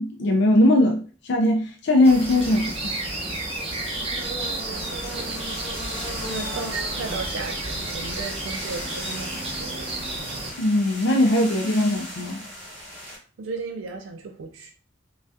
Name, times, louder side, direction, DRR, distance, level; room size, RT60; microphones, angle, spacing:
voice 1, 0.0-2.9 10.6-12.4, left 1 dB, 65° left, 0.4 m, -20 dB
sound 1, 2.0-10.5, right 2 dB, 30° right, 0.8 m, -31 dB
voice 2, 4.5-5.6 6.3-9.9 13.4-14.7, right 4 dB, 85° right, 0.4 m, -35 dB
sound 2, 4.7-13.2, equal, 5° left, 1.0 m, -39 dB
2.6 x 2.2 x 3.3 m
head